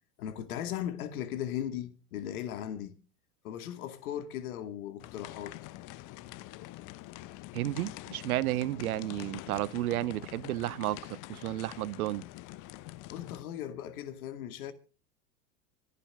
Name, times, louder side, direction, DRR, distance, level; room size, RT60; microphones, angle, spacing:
voice 1, 0.2-3.0 3.4-5.6 13.1-14.7, left 10 dB, 65° left, 2.4 m, -37 dB
sound 1, 5.0-13.4, left 17 dB, 40° left, 1.0 m, -45 dB
voice 2, 7.5-12.2, right 15 dB, 65° right, 0.9 m, -32 dB
26.5 x 9.2 x 3.7 m
hypercardioid pair, 90°, 46 cm